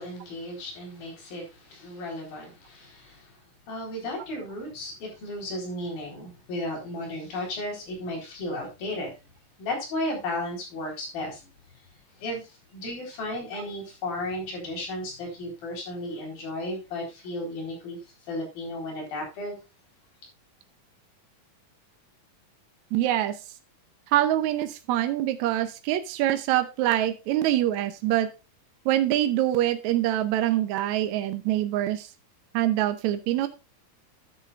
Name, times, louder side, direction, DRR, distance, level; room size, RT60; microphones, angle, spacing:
voice 1, 0.0-3.4 3.7-9.2 9.6-11.5 12.2-19.6, left 1 dB, 90° left, 5.9 m, -34 dB
voice 2, 22.9-23.4 24.1-28.3 28.8-32.1 32.5-33.5, right 13 dB, 75° right, 1.7 m, -25 dB
11.0 x 10.0 x 2.4 m
omnidirectional pair, 4.0 m